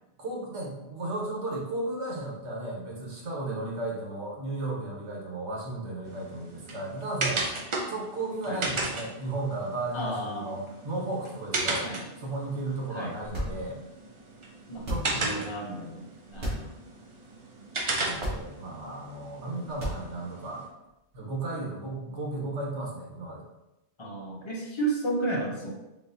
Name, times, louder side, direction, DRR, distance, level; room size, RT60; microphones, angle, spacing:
voice 1, 0.2-7.4 7.9-11.9 12.2-13.8 14.9-15.6 18.0-20.6 21.1-23.4, right 2 dB, 80° right, -2 dB, 1.3 m, -34 dB
sound 1, 6.0-20.7, right 2 dB, 40° right, 0.4 m, -36 dB
voice 2, 9.9-10.6 11.8-12.0 12.9-13.1 14.7-16.0 16.3-16.7 24.0-25.7, right 2 dB, 30° left, -3 dB, 0.8 m, -33 dB
sound 2, 13.2-13.9 14.7-15.3 16.3-16.8 17.1-17.2 18.1-18.8 19.7-20.3, equal, 60° right, 1.3 m, -34 dB
4.0 x 3.4 x 2.7 m, 0.94 s
omnidirectional pair, 1.2 m